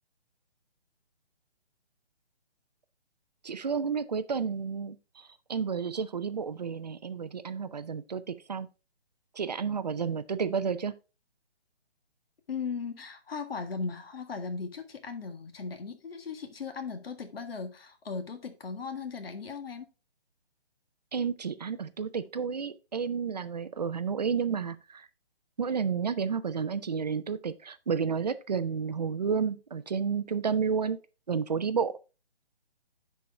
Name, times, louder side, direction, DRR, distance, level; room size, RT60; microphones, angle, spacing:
voice 1, 3.4-8.7 9.4-10.9 21.1-25.1 25.6-31.0 31.3-31.9, right 6 dB, 40° right, 0.5 m, -31 dB
voice 2, 12.5-19.9, left 5 dB, 65° left, 1.7 m, -37 dB
10.5 x 4.6 x 3.5 m
hypercardioid pair, 160°, 32 cm